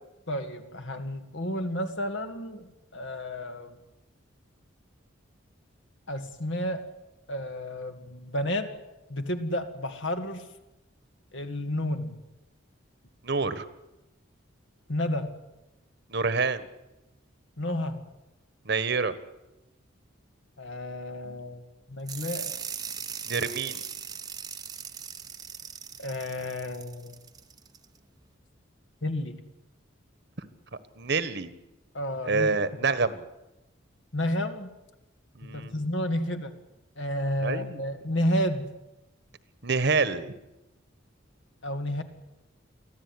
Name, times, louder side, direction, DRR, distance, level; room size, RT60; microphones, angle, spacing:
voice 1, 0.3-3.8 6.1-6.9 7.3-8.8 9.1-10.5 11.3-12.2 14.9-15.4 17.6-18.0 20.6-21.6 21.9-22.6 26.0-27.2 29.0-29.4 31.9-32.6 34.1-34.7 35.4-36.6 37.0-38.7 41.6-42.0, left 1 dB, 65° left, 7 dB, 2.4 m, -31 dB
voice 2, 13.2-13.6 16.1-16.6 18.6-19.1 23.3-23.8 31.0-31.5 32.3-33.2 35.4-35.7 37.4-37.8 39.6-40.3, right 4 dB, 55° right, 13 dB, 1.5 m, -27 dB
sound 1, 22.1-27.8, right 7 dB, 20° right, 0.9 m, -39 dB
24.0 x 15.0 x 9.9 m, 0.97 s
head